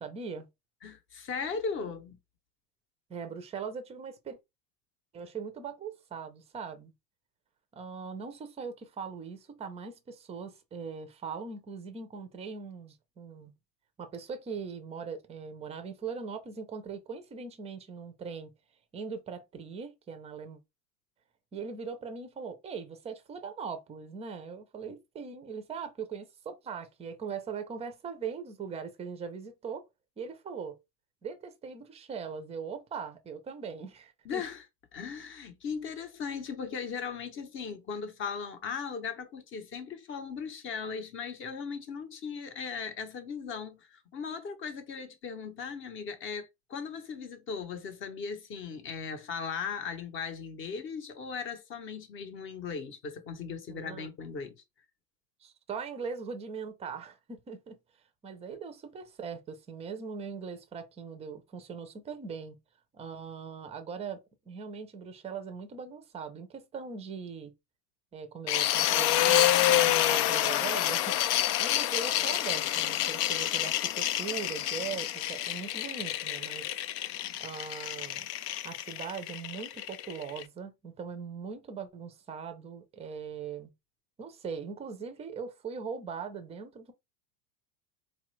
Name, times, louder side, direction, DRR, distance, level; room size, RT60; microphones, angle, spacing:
voice 1, 0.0-0.5 3.1-4.4 5.1-6.9 7.7-13.5 14.0-18.5 18.9-20.6 21.5-29.8 30.2-30.8 31.2-34.4 53.7-54.1 55.4-57.8 58.2-62.6 62.9-67.5 68.1-71.2 71.6-76.7 77.4-78.3 78.6-83.7 84.2-86.9, right 6 dB, 15° right, 0.5 m, -40 dB
voice 2, 0.8-2.2 34.2-34.6 34.9-54.6, left 6 dB, 25° left, 0.7 m, -38 dB
sound 1, 68.5-80.4, left 12 dB, 75° left, 0.6 m, -28 dB
4.1 x 2.4 x 3.0 m
supercardioid pair, 135°, 48 cm